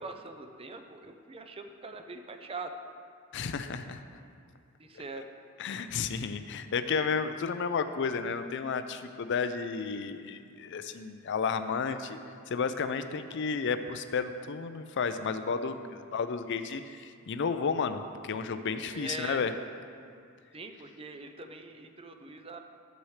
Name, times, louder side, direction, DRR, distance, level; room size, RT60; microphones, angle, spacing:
voice 1, 0.0-2.7 4.8-5.3 18.9-19.4 20.5-22.6, right 3 dB, 25° right, 6 dB, 0.5 m, -42 dB
voice 2, 3.3-4.0 5.6-12.2 12.5-19.5, left 5 dB, 60° left, 9 dB, 0.5 m, -32 dB
12.0 x 7.8 x 3.2 m, 2.3 s
head